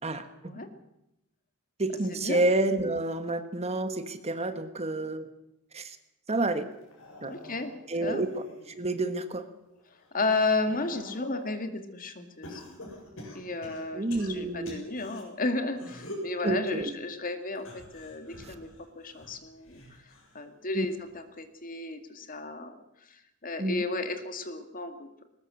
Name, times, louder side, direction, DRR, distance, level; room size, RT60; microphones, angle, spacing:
voice 1, 0.0-0.5 1.8-5.3 5.7-6.0 6.3-6.7 7.2-7.3 7.9-8.4 8.8-9.4 13.9-14.8 16.4-16.9 20.7-20.8 23.6-23.8, right 2 dB, 30° right, 10 dB, 1.4 m, -29 dB
sound 1, 6.8-9.1 9.6-11.6 12.4-15.2 15.7-16.3 17.5-20.4 20.8-21.2 22.4-22.5, left 1 dB, 60° left, 7.9 m, -45 dB
voice 2, 7.2-7.7 8.0-8.2 10.1-12.8 13.3-18.7 19.0-19.8 20.3-22.8 23.4-25.2, left 3 dB, 40° left, 7 dB, 2.2 m, -33 dB
21.5 x 19.5 x 7.8 m, 0.85 s
head